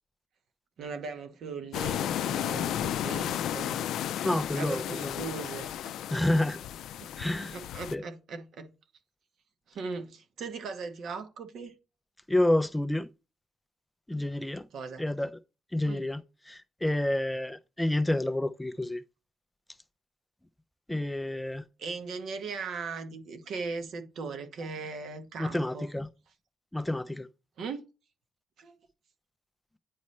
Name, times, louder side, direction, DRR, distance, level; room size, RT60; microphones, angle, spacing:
voice 1, 0.8-3.9 4.5-5.9 7.0-8.7 9.7-11.7 14.7-15.0 15.8-16.0 21.8-25.9 27.6-27.8 28.6-28.7, right 4 dB, 70° right, 1.1 m, -39 dB
sound 1, 1.7-7.9, left 11 dB, 80° left, 0.3 m, -33 dB
voice 2, 4.2-5.2 6.1-6.6 7.2-7.6 7.9-8.0 12.3-13.1 14.1-14.7 15.0-15.4 15.7-19.0 20.9-21.6 25.4-26.1 26.7-27.3, left 1 dB, 5° left, 0.4 m, -29 dB
9.5 x 4.2 x 3.2 m
cardioid pair, 90°, 0 cm